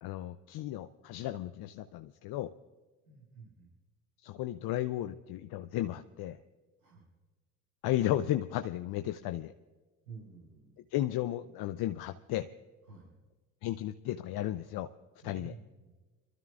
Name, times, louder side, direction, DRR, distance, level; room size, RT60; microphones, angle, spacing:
voice 1, 0.0-2.5 4.2-6.4 7.8-9.5 10.9-12.5 13.6-14.9 15.2-15.5, left 13 dB, 60° left, 9 dB, 0.7 m, -34 dB
voice 2, 3.0-3.7 6.8-7.1 10.0-10.7 12.8-13.1 15.2-16.0, right 4 dB, 90° right, -5 dB, 5.3 m, -51 dB
27.5 x 13.0 x 2.5 m, 1.3 s
hypercardioid pair, 60°, 43 cm